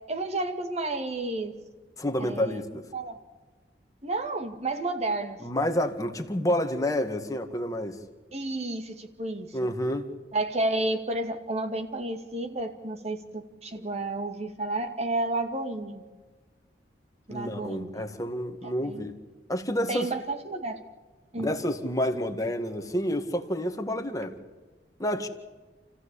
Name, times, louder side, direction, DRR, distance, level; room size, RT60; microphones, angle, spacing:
voice 1, 0.1-1.5 2.2-2.6 2.9-3.2 4.0-5.4 8.3-9.7 10.3-16.0 17.3-18.1 18.6-19.0 19.9-20.8 21.3-21.5, right 2 dB, 40° right, 2.2 m, -31 dB
voice 2, 2.0-2.8 5.4-8.0 9.5-10.1 17.3-19.1 19.5-20.1 21.4-24.4 25.0-25.3, equal, 20° left, 1.9 m, -29 dB
29.0 x 15.0 x 8.5 m
head